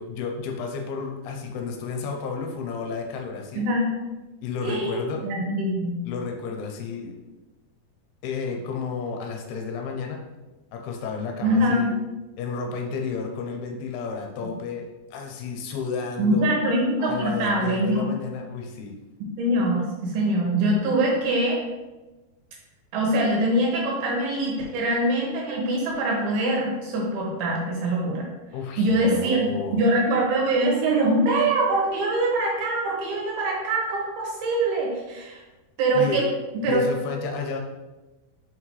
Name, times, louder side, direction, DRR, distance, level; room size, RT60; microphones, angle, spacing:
voice 1, 0.0-3.7 4.4-5.3 6.0-7.1 8.2-10.2 10.7-11.9 12.4-16.5 17.0-19.0 28.5-29.8 35.9-36.3 36.6-37.6, left 5 dB, 80° left, 2 dB, 2.7 m, -32 dB
voice 2, 3.5-4.0 4.6-5.9 11.4-11.9 14.4-14.5 16.2-18.1 19.4-21.6 22.9-28.3 28.8-35.4 35.8-36.2 36.5-36.8, right 1 dB, 75° right, -2 dB, 3.2 m, -23 dB
5.9 x 5.7 x 3.2 m, 1.1 s
omnidirectional pair, 4.6 m